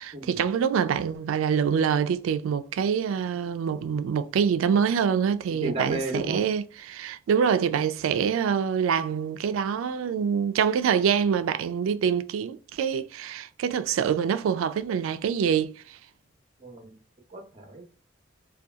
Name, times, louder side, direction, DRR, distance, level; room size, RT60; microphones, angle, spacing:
voice 1, 0.0-16.0, right 7 dB, 85° right, 0.3 m, -25 dB
voice 2, 5.6-6.4 16.6-17.0 17.3-17.8, right 2 dB, 30° right, 0.6 m, -33 dB
2.7 x 2.3 x 2.3 m
head